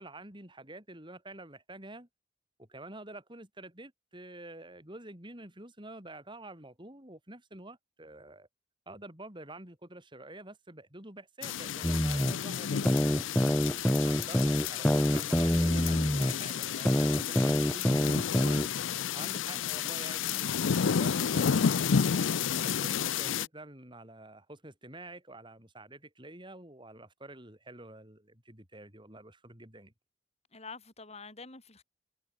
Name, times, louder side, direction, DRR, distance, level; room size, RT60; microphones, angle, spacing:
voice 1, 0.0-2.1 2.6-8.5 8.9-13.3 14.0-18.1 19.1-29.9, right 2 dB, 25° right, 6.6 m, -48 dB
sound 1, 11.4-23.5, left 7 dB, 90° left, 0.5 m, -31 dB
sound 2, 11.8-12.3 12.8-16.3 16.8-18.7, equal, 5° left, 0.6 m, -26 dB
voice 2, 30.5-31.8, left 4 dB, 35° left, 7.2 m, -48 dB
head